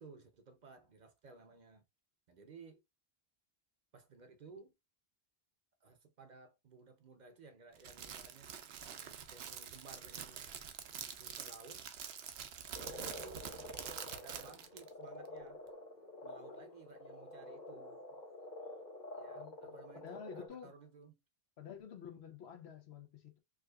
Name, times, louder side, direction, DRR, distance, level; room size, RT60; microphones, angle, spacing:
voice 1, 0.0-1.8 2.3-2.8 3.9-4.7 5.8-8.6 8.9-10.5 11.2-11.8 12.7-13.5 14.1-15.7 16.2-18.2 19.2-21.2, right 4 dB, 50° right, 0.7 m, -57 dB
Crackle, 7.8-14.9, right 8 dB, 80° right, 0.8 m, -46 dB
Frog, 12.7-20.5, left 1 dB, 50° left, 1.1 m, -49 dB
voice 2, 19.4-20.7 21.6-23.4, left 7 dB, 85° left, 1.1 m, -50 dB
4.7 x 2.4 x 2.2 m
omnidirectional pair, 1.0 m